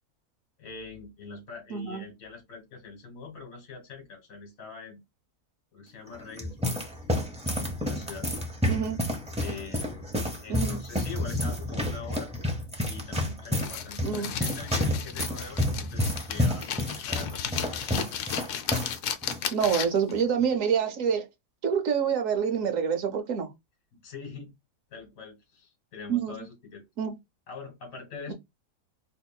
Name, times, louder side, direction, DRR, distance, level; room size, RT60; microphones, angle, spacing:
voice 1, 0.6-5.0 5.7-6.8 7.8-8.3 9.4-10.0 10.4-12.4 12.9-17.4 22.6-22.7 23.9-24.6 24.9-26.8 27.5-28.3, left 5 dB, 65° left, 1.7 m, -43 dB
voice 2, 1.7-2.0 8.7-9.0 10.5-10.8 14.0-14.3 19.5-21.2 21.6-23.5 26.1-26.4 27.0-27.1 28.3-28.4, right 7 dB, 65° right, 1.1 m, -27 dB
sound 1, 6.1-19.0 19.2-19.4 20.1-20.4, left 1 dB, 10° right, 0.4 m, -30 dB
sound 2, 13.6-20.1, left 9 dB, 85° left, 1.1 m, -34 dB
4.5 x 2.9 x 2.3 m
omnidirectional pair, 1.6 m